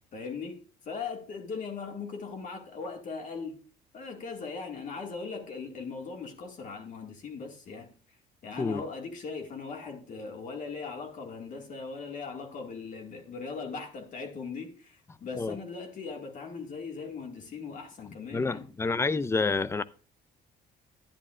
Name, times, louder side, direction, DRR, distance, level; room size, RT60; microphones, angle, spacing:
voice 1, 0.1-0.6 0.9-3.6 3.9-7.9 8.4-18.7, left 4 dB, 50° left, 2.0 m, -39 dB
voice 2, 18.3-19.8, left 4 dB, 15° left, 0.4 m, -28 dB
11.0 x 10.0 x 2.5 m
cardioid pair, 110°, 17 cm